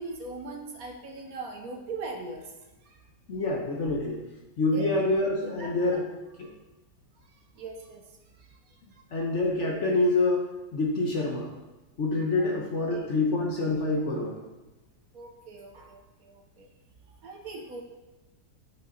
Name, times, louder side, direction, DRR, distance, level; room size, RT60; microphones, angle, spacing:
voice 1, 0.0-2.5 2.8-3.0 4.7-4.9 5.4-6.0 6.4-6.6 7.2-9.0 12.4-12.6 12.9-13.1 15.1-16.7 17.1-17.8, right 3 dB, 60° right, 3 dB, 1.2 m, -41 dB
voice 2, 3.3-4.2 4.6-6.1 6.4-6.5 9.1-11.5 12.0-14.4, left 2 dB, 50° left, 0 dB, 1.1 m, -26 dB
8.4 x 5.6 x 3.9 m, 1.1 s
omnidirectional pair, 1.9 m